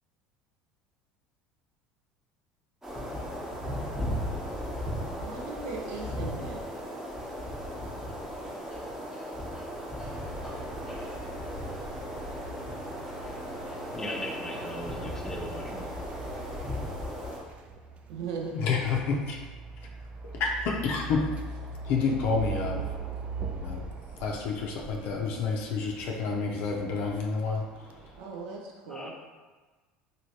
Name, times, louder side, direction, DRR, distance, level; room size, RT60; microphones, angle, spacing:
sound 1, 2.8-17.4, equal, 10° right, 0.9 m, -36 dB
voice 1, 5.2-6.6 18.1-18.6 28.2-29.1, right 4 dB, 80° right, 0 dB, 0.6 m, -38 dB
sound 2, 9.5-28.2, right 4 dB, 35° right, 0.3 m, -42 dB
Mechanical fan, 10.0-16.6, right 2 dB, 60° right, 1.0 m, -46 dB
voice 2, 13.9-15.9 28.8-29.1, left 1 dB, 15° left, 1 dB, 0.5 m, -38 dB
voice 3, 18.5-19.4 20.4-21.2 21.8-22.8 23.6-23.8 24.2-27.6, left 4 dB, 60° left, -1 dB, 0.4 m, -29 dB
3.0 x 2.6 x 2.8 m, 1.3 s
hypercardioid pair, 85°, 4 cm